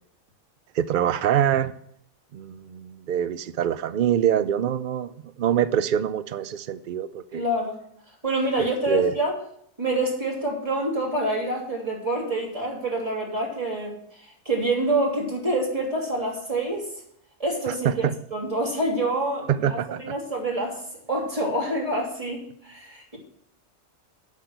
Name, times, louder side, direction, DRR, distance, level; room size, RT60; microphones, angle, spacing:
voice 1, 0.7-1.7 2.3-7.4 8.9-9.1 17.7-18.1 19.5-20.1, right 10 dB, 85° right, 13 dB, 0.4 m, -25 dB
voice 2, 7.3-7.8 8.2-9.4 9.8-16.9 17.4-17.9 18.3-20.8 21.1-23.2, right 1 dB, 25° right, -3 dB, 3.2 m, -27 dB
8.2 x 6.3 x 7.8 m, 0.67 s
omnidirectional pair, 1.4 m